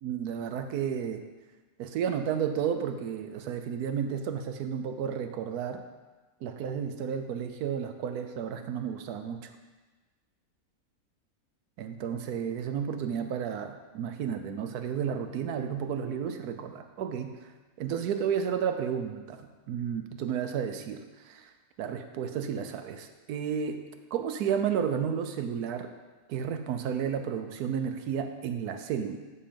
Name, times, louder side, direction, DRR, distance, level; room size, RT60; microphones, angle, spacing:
voice 1, 0.0-1.2 1.8-5.8 6.4-9.5 11.8-17.5 17.8-21.5 21.8-23.8 24.1-25.9 26.3-29.2, right 8 dB, 90° right, 8 dB, 1.2 m, -32 dB
12.5 x 4.5 x 5.2 m, 1.3 s
omnidirectional pair, 1.6 m